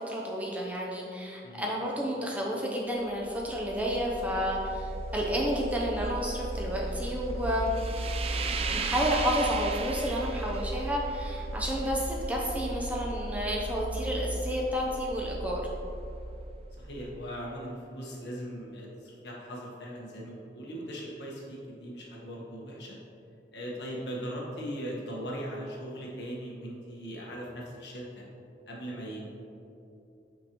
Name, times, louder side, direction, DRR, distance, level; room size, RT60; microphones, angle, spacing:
voice 1, 0.0-7.7 8.7-15.6, equal, 10° right, -3 dB, 0.7 m, -31 dB
sound 1, 3.1-17.3, right 2 dB, 35° right, 0.3 m, -35 dB
voice 2, 16.8-23.0 23.5-28.2 28.7-29.3, equal, 75° left, -3 dB, 1.4 m, -39 dB
8.7 x 5.3 x 3.1 m, 2.8 s
head